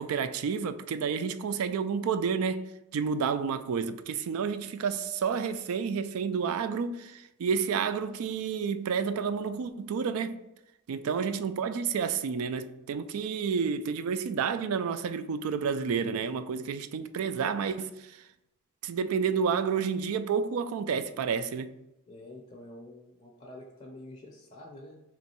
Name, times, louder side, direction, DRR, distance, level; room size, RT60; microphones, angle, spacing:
voice 1, 0.0-2.7 2.9-10.4 10.9-18.2 18.8-21.7, right 6 dB, 75° right, 0.3 m, -30 dB
voice 2, 11.0-11.4 22.1-25.0, left 1 dB, 30° left, 0.5 m, -47 dB
3.5 x 3.1 x 4.3 m
head